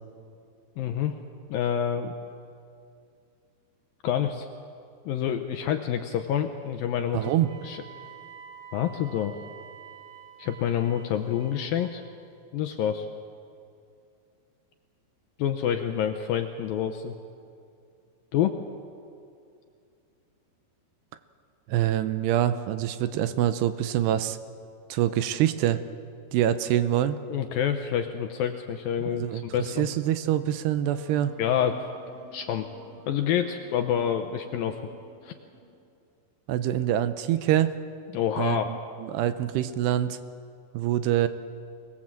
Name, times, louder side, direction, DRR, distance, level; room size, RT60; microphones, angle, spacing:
voice 1, 0.8-1.1 1.5-2.1 4.0-4.5 5.1-7.3 7.6-7.8 8.7-9.4 10.4-12.0 12.5-13.1 15.4-17.1 18.3-18.6 27.3-29.9 31.4-31.9 32.3-32.7 33.1-34.8 35.2-35.3 38.1-38.7, left 9 dB, 80° left, 6 dB, 2.2 m, -27 dB
voice 2, 7.1-7.5 21.7-24.4 24.9-25.8 26.3-27.2 29.1-31.3 36.5-37.7 38.4-40.2 40.7-41.3, right 12 dB, 80° right, 11 dB, 2.8 m, -25 dB
Wind instrument woodwind instrument, 7.2-12.0, right 8 dB, 60° right, 3.0 m, -48 dB
Wind instrument woodwind instrument 2, 30.8-35.9, right 1 dB, 40° right, 4.5 m, -51 dB
24.5 x 19.5 x 7.6 m, 2.4 s
omnidirectional pair, 5.0 m